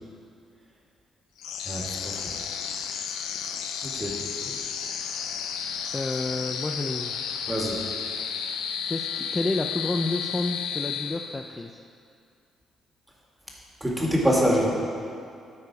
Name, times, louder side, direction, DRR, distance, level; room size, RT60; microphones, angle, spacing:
sound 1, 1.4-11.6, left 7 dB, 90° left, 0.5 m, -32 dB
voice 1, 1.6-2.3 3.8-4.2 4.4-4.5 7.5-7.8 13.8-14.7, equal, 10° right, -3 dB, 2.0 m, -25 dB
voice 2, 5.9-7.2 8.9-11.8, left 2 dB, 20° left, 3 dB, 0.4 m, -30 dB
13.0 x 4.7 x 4.8 m, 2.4 s
cardioid pair, 90°, 0 cm